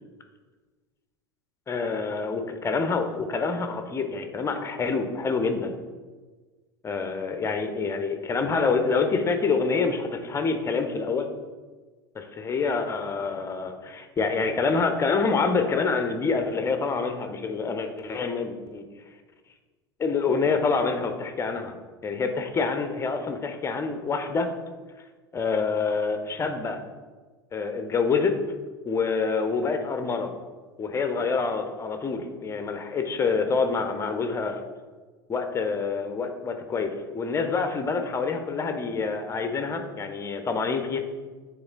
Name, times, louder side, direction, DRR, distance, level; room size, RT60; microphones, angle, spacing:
voice 1, 1.7-5.7 6.8-11.3 12.1-18.8 20.0-21.7 22.0-24.5 25.3-26.8 27.5-28.3 28.8-30.3 30.8-34.6 35.3-41.0, left 4 dB, 20° left, 6 dB, 0.8 m, -27 dB
9.0 x 3.7 x 4.0 m, 1.4 s
figure-of-eight pair, 80°, 14 cm